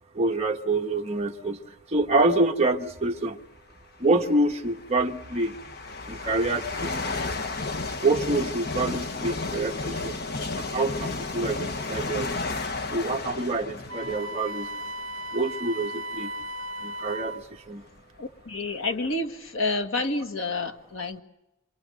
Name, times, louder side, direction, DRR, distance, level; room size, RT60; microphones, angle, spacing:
voice 1, 0.1-1.6 1.9-3.4 4.0-5.5 6.1-7.1 8.0-10.2 10.7-12.3 12.9-14.7 15.3-16.3 16.8-17.4 17.7-17.8, right 2 dB, 30° right, 2 dB, 1.4 m, -26 dB
sound 1, 2.0-2.3 3.4-3.5 4.3-15.7 16.3-16.5 17.3-17.4 17.6-19.1, left 3 dB, 50° left, 1.3 m, -33 dB
Wind instrument woodwind instrument, 13.9-17.4, right 1 dB, 75° right, 0.8 m, -36 dB
voice 2, 18.2-21.2, left 2 dB, 80° left, 7 dB, 1.9 m, -29 dB
27.5 x 24.5 x 6.6 m, 0.91 s
head